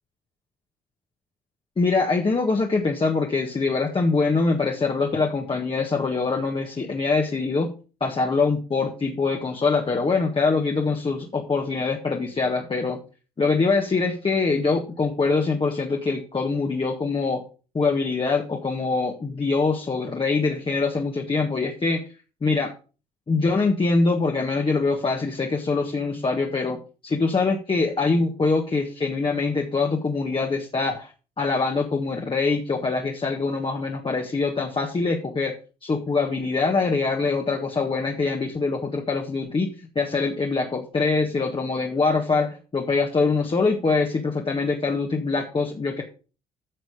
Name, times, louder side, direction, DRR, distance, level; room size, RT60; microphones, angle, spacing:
voice 1, 1.8-7.7 8.0-13.0 13.4-17.4 17.7-22.0 22.4-22.7 23.3-26.8 27.0-31.1 31.4-35.5 35.8-46.0, left 4 dB, 30° left, 1 dB, 1.7 m, -24 dB
10.5 x 6.2 x 5.0 m, 0.35 s
supercardioid pair, 60°, 17 cm